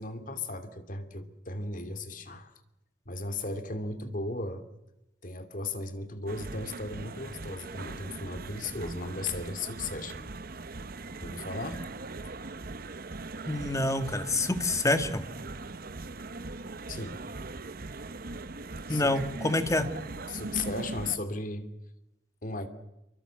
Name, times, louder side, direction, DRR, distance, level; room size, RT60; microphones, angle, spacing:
voice 1, 0.0-2.5 3.1-4.6 5.2-10.3 11.2-11.9 16.9-17.2 18.9-19.1 20.3-21.7 22.4-22.7, left 2 dB, 45° left, 9 dB, 2.7 m, -36 dB
sound 1, 6.3-21.2, right 3 dB, 50° right, 0.9 m, -40 dB
voice 2, 13.5-15.2 18.9-19.9, left 2 dB, 15° left, 9 dB, 1.9 m, -27 dB
28.0 x 24.0 x 7.8 m, 0.90 s
head